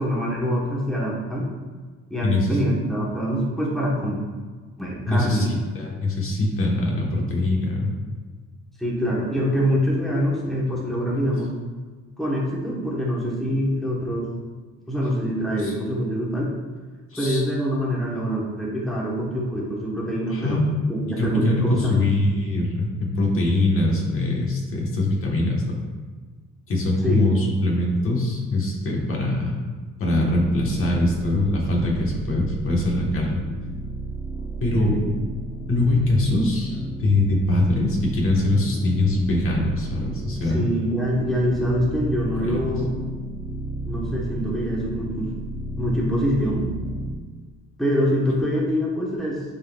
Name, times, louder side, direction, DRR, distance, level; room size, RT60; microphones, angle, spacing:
voice 1, 0.0-1.5 2.1-4.2 4.8-5.5 8.8-11.5 12.2-14.3 14.9-16.5 17.2-20.6 20.9-22.0 27.0-27.2 34.7-35.1 40.5-42.9 43.8-45.3 45.8-46.7 47.8-49.4, equal, ahead, -5 dB, 1.1 m, -24 dB
voice 2, 2.2-2.6 5.1-7.9 15.6-15.7 17.1-17.4 20.3-20.6 21.2-25.6 26.7-29.6 30.0-33.4 34.6-34.9 35.7-40.7 42.4-42.6, left 2 dB, 45° left, -1 dB, 1.3 m, -22 dB
sound 1, 30.2-47.1, equal, 20° left, 0.9 m, -33 dB
10.5 x 3.9 x 2.4 m, 1.4 s
cardioid pair, 145°, 29 cm